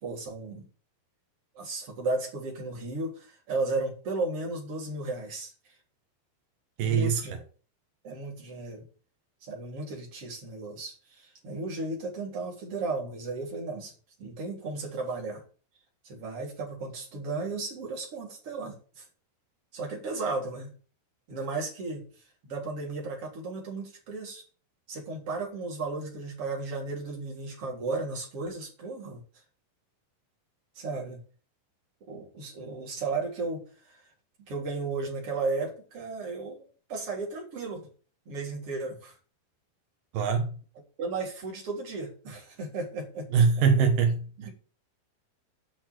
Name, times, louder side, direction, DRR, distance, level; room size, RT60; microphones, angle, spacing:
voice 1, 0.0-0.6 1.6-5.5 6.8-7.3 8.0-8.8 9.4-13.9 14.2-15.4 16.0-19.0 19.7-20.7 21.3-22.0 22.4-24.4 24.9-29.2 30.8-31.2 32.1-34.0 34.4-36.6 36.9-37.8 38.3-39.1 41.0-43.4 44.4-44.5, right 3 dB, 30° right, 3.5 m, -34 dB
voice 2, 6.8-7.2 40.1-40.6 43.3-44.5, right 6 dB, 85° right, 1.9 m, -23 dB
8.8 x 6.1 x 8.0 m
omnidirectional pair, 5.9 m